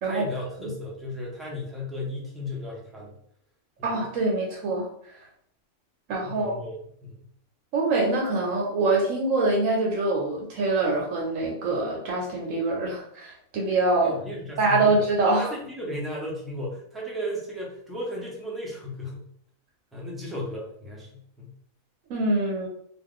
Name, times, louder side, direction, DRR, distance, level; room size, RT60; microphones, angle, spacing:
voice 1, 0.0-3.2 3.8-3.9 6.2-7.3 13.9-15.0 15.4-19.2 19.9-21.5, left 1 dB, ahead, -4 dB, 0.4 m, -35 dB
voice 2, 3.8-4.9 6.1-6.6 7.7-14.1 14.6-15.5 22.1-22.7, right 2 dB, 70° right, -1 dB, 1.0 m, -24 dB
2.5 x 2.4 x 3.6 m, 0.66 s
omnidirectional pair, 1.4 m